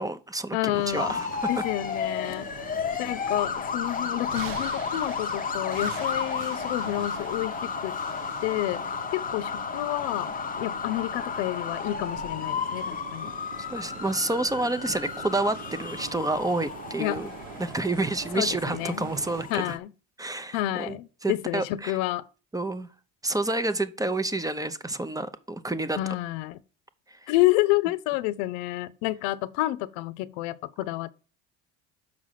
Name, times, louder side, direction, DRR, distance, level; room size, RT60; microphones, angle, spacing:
voice 1, 0.0-1.6 13.7-17.3 17.6-19.7 20.2-21.0 21.2-22.0 22.5-22.9 23.2-26.0 27.1-27.3, right 2 dB, 10° right, 0.7 m, -29 dB
voice 2, 0.5-1.2 1.5-2.5 3.0-8.0 8.4-8.8 9.1-13.3 17.0-17.2 18.3-19.1 19.5-19.9 20.5-22.2 26.0-26.6 27.3-31.1, left 17 dB, 85° left, 0.6 m, -29 dB
sound 1, 0.7-19.4, right 9 dB, 75° right, 1.0 m, -43 dB
sound 2, 0.9-19.8, left 6 dB, 25° left, 0.7 m, -33 dB
6.3 x 4.8 x 5.6 m
supercardioid pair, 85°, 33 cm